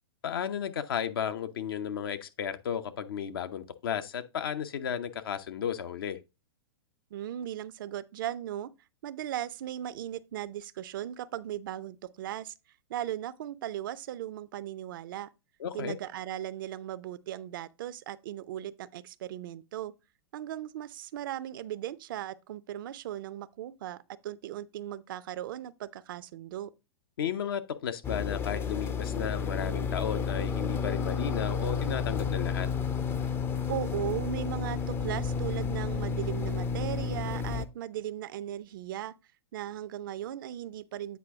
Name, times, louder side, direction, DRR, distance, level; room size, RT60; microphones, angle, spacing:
voice 1, 0.2-6.2 15.6-16.0 27.2-32.7, left 8 dB, 60° left, 0.8 m, -34 dB
voice 2, 7.1-8.7 9.0-12.5 12.9-15.3 15.7-19.9 20.3-26.7 33.7-39.1 39.5-41.2, right 11 dB, 55° right, 0.5 m, -37 dB
sound 1, 28.0-37.6, left 6 dB, 15° left, 0.5 m, -31 dB
8.3 x 4.7 x 3.5 m
figure-of-eight pair, 105°, 13 cm